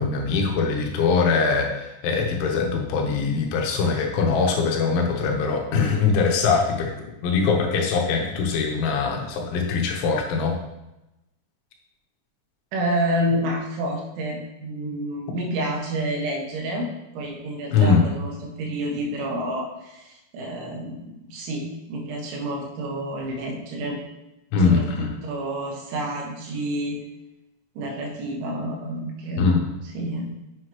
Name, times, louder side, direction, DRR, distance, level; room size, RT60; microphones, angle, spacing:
voice 1, 0.0-6.9 7.2-10.6 17.7-18.1 24.5-25.1 29.4-29.7, left 4 dB, 80° left, 1 dB, 3.4 m, -22 dB
voice 2, 12.7-16.9 17.2-18.3 18.6-24.0 24.6-27.0 27.8-29.5 30.0-30.3, right 1 dB, 85° right, -1 dB, 3.7 m, -29 dB
7.9 x 7.1 x 3.0 m, 0.94 s
omnidirectional pair, 5.4 m